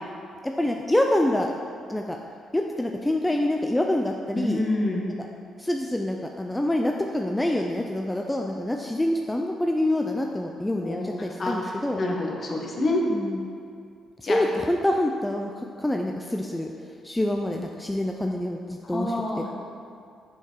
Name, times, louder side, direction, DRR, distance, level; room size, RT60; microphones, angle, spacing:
voice 1, 0.4-1.5 1.9-2.2 2.5-4.6 5.6-12.0 13.1-13.4 14.3-19.5, left 1 dB, 10° left, 2 dB, 0.4 m, -26 dB
voice 2, 4.3-5.1 10.8-13.0 14.2-14.4 18.8-19.5, left 2 dB, 45° left, -1 dB, 1.4 m, -28 dB
7.1 x 5.9 x 4.6 m, 2.4 s
cardioid pair, 90°, 0 cm